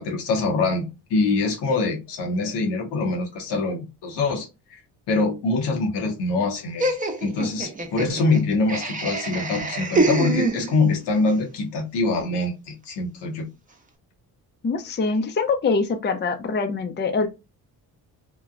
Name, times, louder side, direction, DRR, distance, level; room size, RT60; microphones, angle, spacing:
voice 1, 0.0-4.5 5.1-13.5, left 3 dB, 85° left, 0.9 m, -24 dB
Laughter, 6.8-11.0, right 2 dB, 20° right, 0.7 m, -26 dB
voice 2, 14.6-17.3, left 4 dB, 25° left, 0.5 m, -24 dB
3.1 x 2.2 x 2.5 m
cardioid pair, 75°, 41 cm